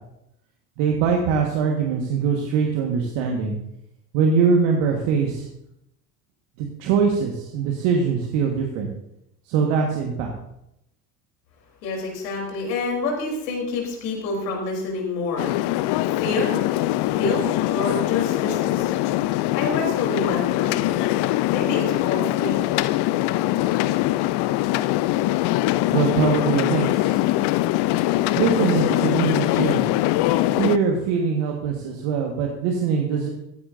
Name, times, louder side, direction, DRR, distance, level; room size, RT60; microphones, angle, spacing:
voice 1, 0.8-3.5 4.1-5.5 6.6-8.9 9.5-10.3 25.9-27.2 28.4-29.8 30.6-33.3, right 6 dB, 65° right, 1 dB, 1.7 m, -22 dB
voice 2, 11.8-15.5 16.0-16.6 17.0-18.9 19.2-21.1 21.5-22.6, left 3 dB, 75° left, 0 dB, 3.9 m, -28 dB
sound 1, 15.4-30.8, left 16 dB, 50° left, 0.6 m, -22 dB
15.0 x 14.5 x 2.7 m, 0.82 s
hypercardioid pair, 60°, 50 cm